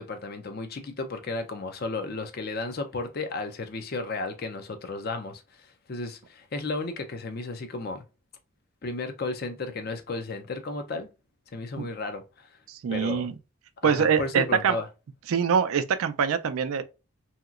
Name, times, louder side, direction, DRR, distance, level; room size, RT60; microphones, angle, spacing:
voice 1, 0.0-8.0 8.8-11.1 11.5-12.5 12.9-13.3 13.8-14.8, left 3 dB, 45° left, 0.5 m, -34 dB
voice 2, 12.7-13.3 13.8-14.8 15.3-16.8, right 6 dB, 80° right, 0.4 m, -24 dB
2.9 x 2.8 x 2.4 m
head